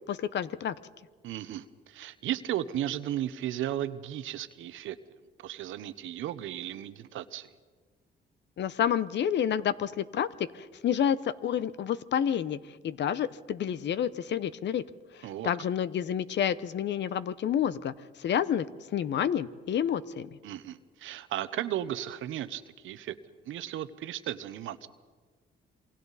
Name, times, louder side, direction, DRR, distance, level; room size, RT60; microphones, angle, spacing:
voice 1, 0.1-0.7 8.6-12.6 12.8-14.8 15.4-17.9 18.2-18.7 18.9-20.3, left 9 dB, 65° left, 16 dB, 0.8 m, -29 dB
voice 2, 1.2-5.0 5.4-7.5 15.2-15.5 20.4-23.1 23.4-24.9, right 12 dB, 80° right, 13 dB, 0.9 m, -35 dB
27.5 x 23.5 x 4.1 m, 1.5 s
cardioid pair, 90°, 20 cm